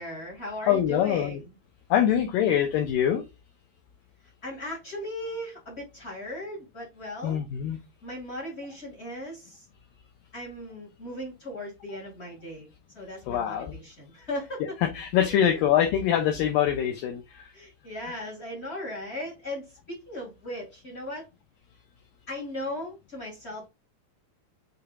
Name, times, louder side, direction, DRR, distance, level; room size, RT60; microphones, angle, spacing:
voice 1, 0.0-1.4 4.4-7.4 8.0-9.6 10.3-12.7 12.9-14.7 15.2-15.4 17.5-21.2 22.3-23.7, left 1 dB, 40° left, -3 dB, 0.9 m, -37 dB
voice 2, 0.6-1.4 1.9-3.2 7.2-7.8 13.3-13.8 14.8-17.5, left 10 dB, 85° left, 5 dB, 2.0 m, -24 dB
6.7 x 3.4 x 2.3 m, 0.23 s
omnidirectional pair, 4.7 m